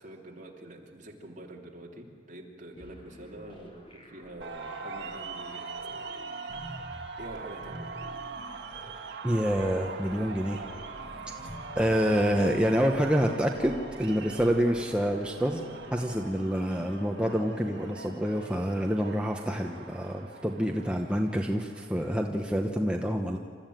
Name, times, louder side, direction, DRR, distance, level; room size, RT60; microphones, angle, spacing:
voice 1, 0.0-6.1 6.5-6.9 7.2-7.9, right 1 dB, 45° right, 0 dB, 2.9 m, -46 dB
sound 1, 2.8-16.4, equal, 30° left, 3.9 m, -49 dB
sound 2, 4.4-22.2, right 4 dB, 70° right, 1.9 m, -43 dB
voice 2, 9.2-10.6 11.7-15.6 15.9-23.4, equal, 5° right, 1 dB, 1.0 m, -27 dB
sound 3, 9.9-18.8, left 1 dB, 45° left, 1.6 m, -49 dB
28.0 x 14.0 x 9.2 m, 2.1 s
head